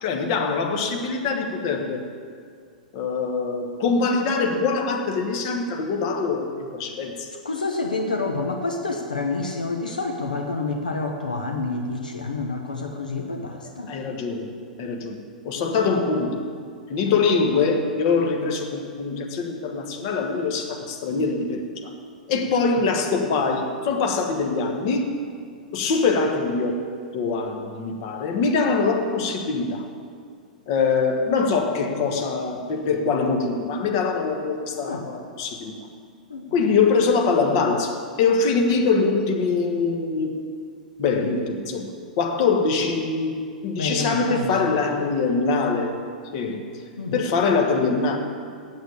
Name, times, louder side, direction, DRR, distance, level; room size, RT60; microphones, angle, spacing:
voice 1, 0.0-2.1 2.9-7.3 13.9-16.5 16.9-21.9 22.3-25.2 25.7-26.9 27.1-29.9 30.7-35.9 36.5-40.4 41.0-45.9 46.3-46.6 47.1-48.2, left 4 dB, 45° left, 3 dB, 1.3 m, -23 dB
voice 2, 7.4-13.9 17.0-17.2 34.8-35.0 36.3-36.7 43.8-45.1 47.0-47.2, left 3 dB, 75° left, 3 dB, 0.9 m, -28 dB
8.4 x 8.0 x 8.5 m, 2.2 s
figure-of-eight pair, 100°, 4 cm